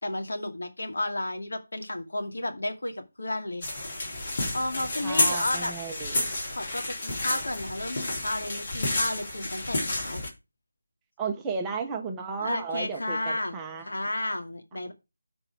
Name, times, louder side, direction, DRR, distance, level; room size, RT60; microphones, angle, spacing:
voice 1, 0.0-3.7 4.5-5.7 6.5-10.2 12.4-13.6 13.8-14.9, left 1 dB, 70° left, 2.3 m, -32 dB
sound 1, 3.6-10.3, left 2 dB, 35° left, 3.6 m, -30 dB
voice 2, 5.0-6.3 11.2-13.9, right 5 dB, 10° right, 0.9 m, -34 dB
13.0 x 4.4 x 4.7 m
figure-of-eight pair, 165°, 0 cm